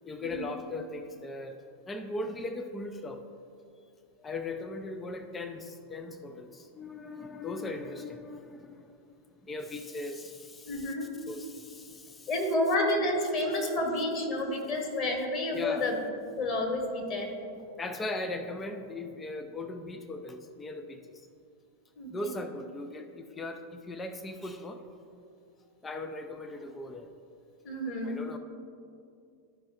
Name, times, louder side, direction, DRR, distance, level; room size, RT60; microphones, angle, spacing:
voice 1, 0.0-1.6 1.9-3.2 4.2-10.9 11.3-12.3 15.5-15.9 17.8-21.3 22.1-24.8 25.8-27.1 28.0-28.4, left 2 dB, 15° left, 7 dB, 0.4 m, -39 dB
voice 2, 10.7-11.1 12.3-16.0 16.3-17.3 22.0-22.3 27.6-28.2, left 1 dB, 30° left, 1 dB, 1.6 m, -30 dB
12.5 x 5.3 x 2.8 m, 2.6 s
figure-of-eight pair, 90°, 0 cm